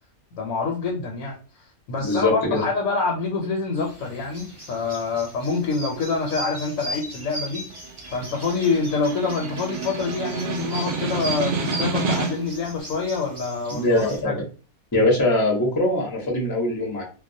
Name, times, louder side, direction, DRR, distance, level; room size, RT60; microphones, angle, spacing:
voice 1, 0.3-1.4 1.9-7.6 8.1-13.9 14.2-14.4, left 4 dB, 75° left, 0 dB, 1.0 m, -26 dB
voice 2, 2.0-2.6 13.7-14.4 14.9-17.0, left 1 dB, 20° left, -2 dB, 0.6 m, -22 dB
sound 1, 3.8-14.2, right 1 dB, 25° right, 0.8 m, -38 dB
Snare drum, 7.7-12.6, right 4 dB, 85° right, 0.4 m, -29 dB
2.3 x 2.1 x 2.6 m, 0.36 s
omnidirectional pair, 1.5 m